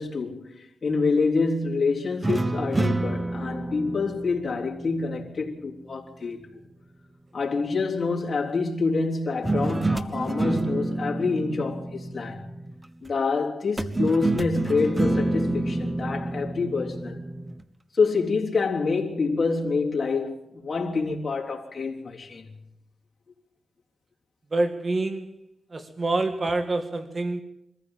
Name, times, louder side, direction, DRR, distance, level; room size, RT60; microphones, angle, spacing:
voice 1, 0.0-6.6 7.3-12.5 13.0-17.2 17.9-22.5, left 4 dB, 50° left, 3.6 m, -27 dB
Nylon guitar - spanish pattern - E major, 2.2-5.6 9.4-12.9 13.8-17.6, right 2 dB, 25° right, 1.3 m, -28 dB
voice 2, 24.5-25.3 25.7-27.4, right 2 dB, 45° right, 2.0 m, -26 dB
24.0 x 14.5 x 7.6 m
cardioid pair, 60°, 0 cm